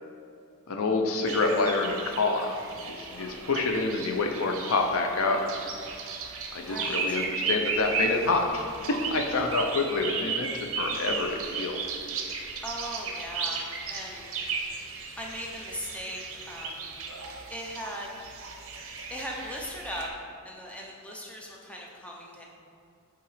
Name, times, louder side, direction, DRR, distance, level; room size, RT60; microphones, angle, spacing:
voice 1, 0.7-5.4 6.5-8.6 9.1-10.5 10.7-11.8, left 3 dB, 65° left, 3 dB, 0.6 m, -27 dB
sound 1, 1.2-20.1, right 4 dB, 65° right, 0.7 m, -35 dB
voice 2, 3.1-3.5 6.6-7.2 12.6-13.6 13.9-14.4 15.2-16.9 17.5-18.1 19.1-20.1 20.4-22.4, equal, 5° left, -2 dB, 0.6 m, -39 dB
5.8 x 3.7 x 4.9 m, 2.5 s
head